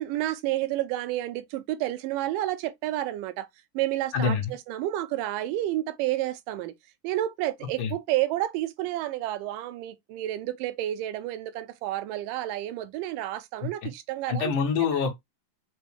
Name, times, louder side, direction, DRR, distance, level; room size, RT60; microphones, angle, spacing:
voice 1, 0.0-3.5 3.8-6.7 7.0-14.5 14.9-15.0, right 14 dB, 85° right, 2.1 m, -30 dB
voice 2, 14.3-15.2, left 6 dB, 75° left, 2.8 m, -25 dB
6.1 x 2.2 x 3.2 m
omnidirectional pair, 3.8 m